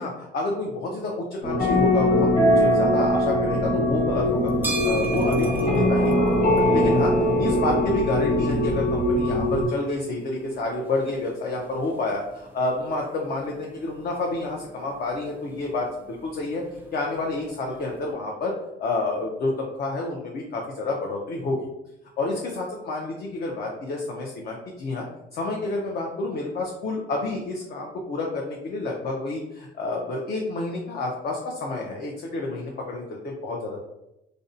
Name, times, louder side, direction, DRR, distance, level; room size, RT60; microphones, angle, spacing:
voice 1, 0.0-4.5 4.8-6.1 6.4-7.1 7.4-16.6 16.9-18.5 18.8-21.7 22.2-25.0 25.3-33.8, left 2 dB, 50° left, -1 dB, 0.5 m, -29 dB
sound 1, 1.4-9.7, left 1 dB, 35° left, 1.2 m, -21 dB
sound 2, 4.3-18.1, right 3 dB, 10° right, 0.4 m, -41 dB
2.5 x 2.0 x 2.6 m, 0.89 s
cardioid pair, 90°, 20 cm